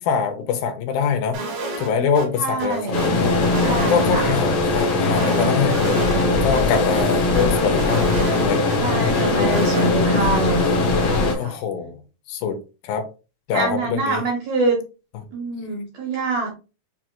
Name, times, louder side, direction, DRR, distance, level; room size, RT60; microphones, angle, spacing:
voice 1, 0.0-1.4 1.8-2.8 3.2-3.3 3.9-8.1 8.4-8.6 9.3-9.6 11.3-12.0 12.3-12.6 12.8-13.0 13.5-14.2, left 6 dB, 85° left, 2.5 m, -23 dB
sound 1, 1.3-2.3 2.6-4.4 4.8-6.3 6.5-6.6 7.0-8.8 9.1-9.9, right 2 dB, 90° right, 3.4 m, -30 dB
voice 2, 2.4-3.1 3.5-4.4 8.8-11.6 13.5-14.8 15.3-16.6, right 3 dB, 70° right, 1.7 m, -25 dB
sound 2, 2.9-11.3, left 3 dB, 60° left, 1.7 m, -20 dB
7.5 x 2.9 x 2.2 m
omnidirectional pair, 4.2 m